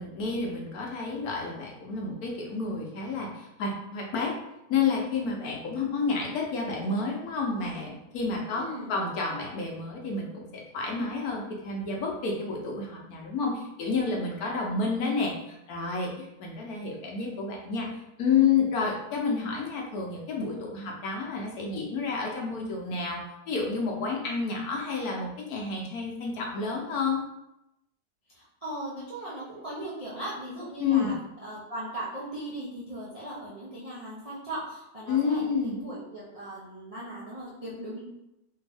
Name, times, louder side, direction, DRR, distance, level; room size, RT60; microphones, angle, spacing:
voice 1, 0.0-4.4 4.7-27.2 30.8-31.1 35.1-35.8, left 4 dB, 65° left, -1 dB, 1.1 m, -30 dB
voice 2, 8.5-8.9 28.3-38.0, right 1 dB, 45° right, -8 dB, 0.4 m, -38 dB
3.3 x 2.7 x 3.4 m, 0.88 s
omnidirectional pair, 1.8 m